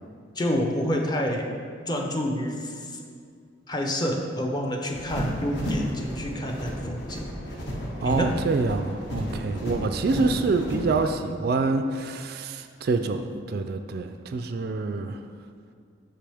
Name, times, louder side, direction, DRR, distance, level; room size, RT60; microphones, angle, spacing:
voice 1, 0.4-1.5 1.9-3.0 3.7-7.3 8.0-8.3, equal, 20° left, 1 dB, 0.6 m, -28 dB
sound 1, 4.9-11.1, equal, 60° left, 1.3 m, -33 dB
voice 2, 8.0-15.2, right 3 dB, 50° right, 7 dB, 0.3 m, -26 dB
8.4 x 5.9 x 3.4 m, 2.2 s
head